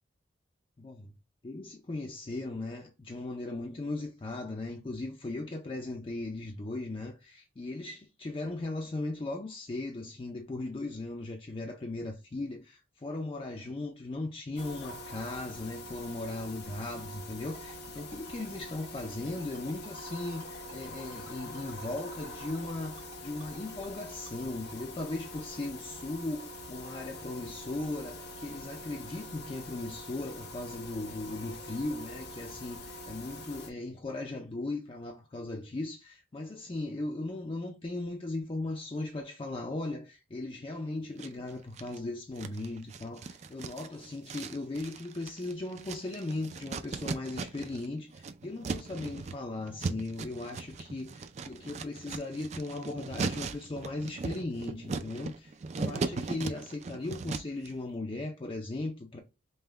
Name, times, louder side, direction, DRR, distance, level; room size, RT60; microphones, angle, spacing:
voice 1, 0.8-1.1 1.4-59.2, left 2 dB, 30° left, 0.5 m, -38 dB
sound 1, 14.6-33.7, left 1 dB, 60° left, 0.7 m, -44 dB
Ringtone, 17.5-24.3, right 3 dB, 70° right, 1.2 m, -53 dB
sound 2, 41.2-42.0 42.4-47.9 48.1-57.7, right 4 dB, 35° right, 0.4 m, -38 dB
5.4 x 2.2 x 3.4 m
head